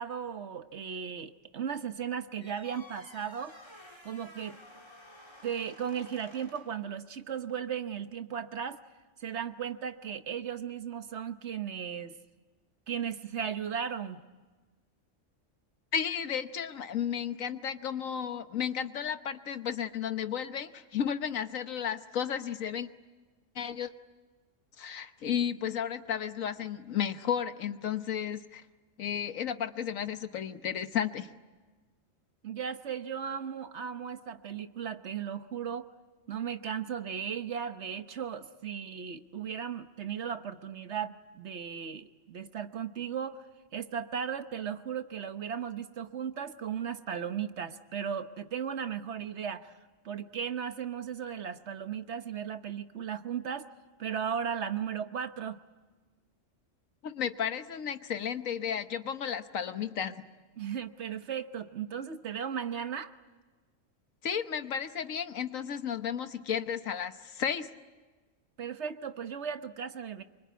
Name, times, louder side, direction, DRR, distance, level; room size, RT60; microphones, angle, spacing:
voice 1, 0.0-3.6 4.0-4.6 5.4-8.8 9.2-12.2 12.9-14.2 32.4-35.9 36.3-43.4 43.7-49.7 50.0-53.7 54.0-55.6 60.6-63.1 68.6-70.2, right 8 dB, 60° right, 10 dB, 1.3 m, -36 dB
sound 1, 2.4-6.8, left 1 dB, 20° left, 3.1 m, -53 dB
voice 2, 15.9-22.9 23.5-23.9 24.8-28.6 29.0-31.3 57.0-60.2 64.2-67.7, left 8 dB, 85° left, 10 dB, 1.5 m, -33 dB
26.0 x 24.0 x 9.4 m, 1.3 s
omnidirectional pair, 1.3 m